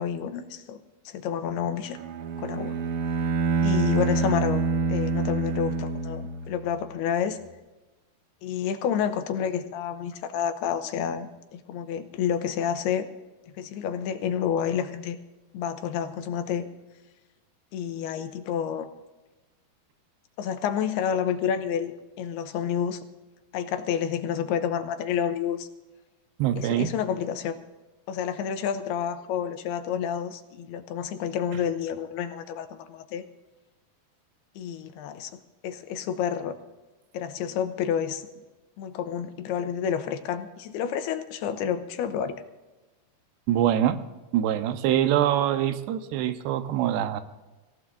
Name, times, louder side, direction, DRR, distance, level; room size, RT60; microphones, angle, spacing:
voice 1, 0.0-2.0 2.4-2.8 3.6-4.6 4.9-7.4 8.4-13.1 13.6-15.2 15.5-16.7 17.7-18.9 20.4-21.9 22.2-23.0 23.5-25.7 26.5-27.5 28.1-33.2 34.6-35.4 35.6-36.5 37.1-38.3 38.8-42.4, left 8 dB, 85° left, 9 dB, 2.8 m, -29 dB
Bowed string instrument, 2.0-6.8, right 4 dB, 65° right, 2.4 m, -27 dB
voice 2, 26.4-26.9 43.5-44.0 44.3-47.2, right 11 dB, 90° right, 9 dB, 3.0 m, -24 dB
25.0 x 15.5 x 2.6 m, 1.1 s
omnidirectional pair, 4.7 m